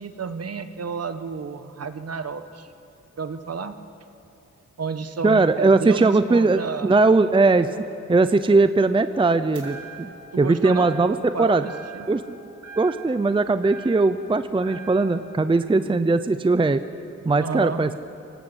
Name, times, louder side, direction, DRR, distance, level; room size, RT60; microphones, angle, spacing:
voice 1, 0.0-2.7 3.2-3.8 4.8-6.9 10.3-10.9 11.3-12.1 17.4-17.8, right 5 dB, 55° right, 9 dB, 1.3 m, -31 dB
voice 2, 5.2-7.7 8.1-11.6 12.1-12.4 12.8-16.8 17.2-17.9, right 3 dB, 15° right, 11 dB, 0.6 m, -19 dB
sound 1, 9.5-10.3 10.6-11.3 11.6-12.3 12.6-14.3 14.6-15.3, right 5 dB, 85° right, 4.3 m, -42 dB
26.5 x 18.0 x 8.1 m, 2.7 s
wide cardioid pair, 120°, 29 cm